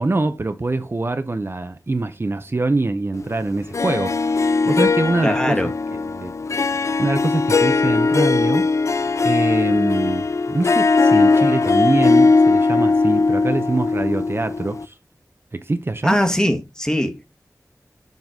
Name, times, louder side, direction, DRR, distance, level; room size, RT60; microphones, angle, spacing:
voice 1, 0.0-6.3 7.0-14.9 15.5-16.2, right 2 dB, 40° right, 0.7 m, -24 dB
Harp, 3.7-14.9, left 4 dB, 55° left, 0.3 m, -19 dB
voice 2, 5.2-5.7 16.0-17.2, equal, 10° left, 1.3 m, -21 dB
7.1 x 4.0 x 3.8 m
wide cardioid pair, 70°, 6 cm